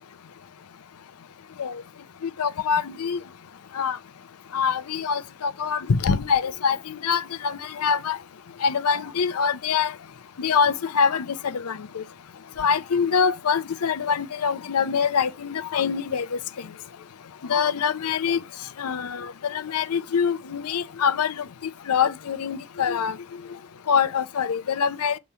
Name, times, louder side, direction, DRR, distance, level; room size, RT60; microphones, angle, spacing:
voice 1, 2.2-3.2 3.7-4.0 4.5-8.2 8.6-9.9 10.4-12.0 12.6-16.4 17.5-18.4 18.8-21.4 21.9-23.2 23.9-25.2, left 6 dB, 90° left, 0.5 m, -24 dB
6.8 x 3.1 x 5.5 m
head